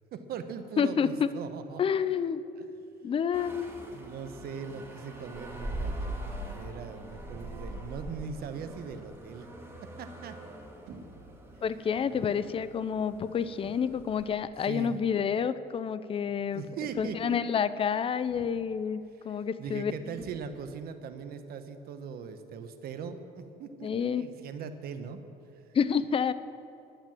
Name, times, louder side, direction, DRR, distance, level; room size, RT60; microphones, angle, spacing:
voice 1, 0.1-1.8 2.6-2.7 3.9-9.5 9.8-10.4 11.5-11.6 12.1-12.4 14.6-14.9 16.3-17.6 19.1-25.8, right 6 dB, 65° right, 8 dB, 1.1 m, -41 dB
voice 2, 0.8-1.3 1.8-2.4 3.0-3.7 11.6-16.6 17.0-19.9 23.8-24.3 25.7-26.3, left 7 dB, 35° left, 14 dB, 0.5 m, -29 dB
sound 1, 3.3-14.3, right 1 dB, 15° right, 2.3 m, -42 dB
sound 2, 10.9-11.3 12.2-12.5 13.6-14.1 15.2-15.4 16.9-17.4 18.2-18.8 20.2-20.8, right 3 dB, 85° right, 2.3 m, -51 dB
11.5 x 9.1 x 7.6 m, 2.8 s
cardioid pair, 110°, 17 cm